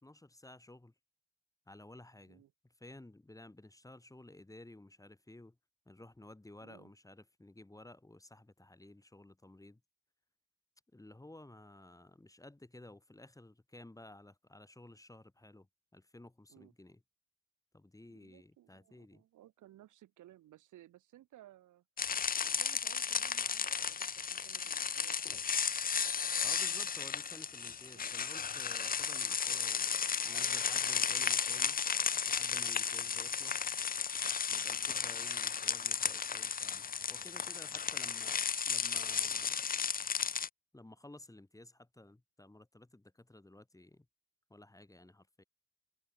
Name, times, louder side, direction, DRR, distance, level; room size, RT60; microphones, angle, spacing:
voice 1, 0.0-0.9 1.7-2.4 2.8-5.6 5.9-9.8 10.9-15.7 15.9-17.0 17.7-19.2 26.4-31.8 32.2-33.8 34.5-38.4 38.6-39.6 40.7-44.1 44.5-45.4, left 1 dB, 10° left, 4.2 m, -55 dB
voice 2, 6.6-6.9 16.5-16.7 18.1-21.8 22.4-25.4 27.9-28.3 29.8-31.0 32.7-33.0 34.7-34.9 37.5-38.0, right 14 dB, 80° right, 3.3 m, -60 dB
sound 1, 22.0-40.5, left 6 dB, 30° left, 0.7 m, -34 dB
cardioid pair, 90°, 30 cm